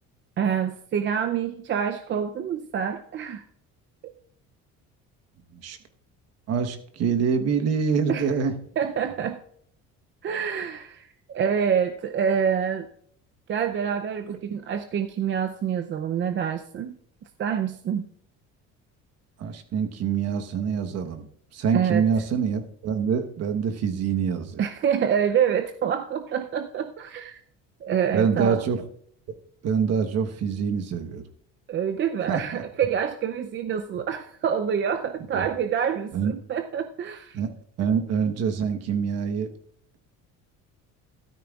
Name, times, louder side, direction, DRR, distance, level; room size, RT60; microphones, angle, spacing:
voice 1, 0.4-3.4 8.1-8.3 8.8-9.4 10.2-12.9 13.5-17.0 17.4-18.0 21.7-22.0 24.6-27.4 27.8-28.6 31.7-37.4, right 8 dB, 40° right, 7 dB, 0.6 m, -27 dB
voice 2, 6.5-8.6 14.3-14.4 19.4-21.3 21.5-24.7 28.1-28.8 29.6-31.2 32.3-32.6 35.3-35.5 36.1-36.3 37.3-37.5 37.8-39.5, right 6 dB, 55° right, 6 dB, 1.2 m, -25 dB
13.0 x 12.5 x 2.4 m, 0.64 s
cardioid pair, 135°, 31 cm